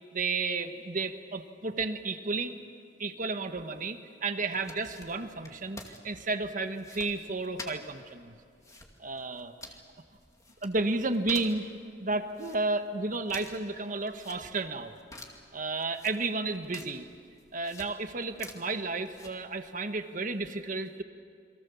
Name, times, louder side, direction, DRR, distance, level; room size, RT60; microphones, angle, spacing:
voice 1, 0.1-2.6 3.0-8.4 9.0-9.5 10.6-11.7 12.0-14.9 15.5-17.0 17.5-21.0, right 3 dB, 45° right, 8 dB, 1.4 m, -32 dB
sound 1, 4.5-19.7, left 2 dB, 20° left, 2.4 m, -50 dB
28.5 x 23.0 x 7.1 m, 2.3 s
head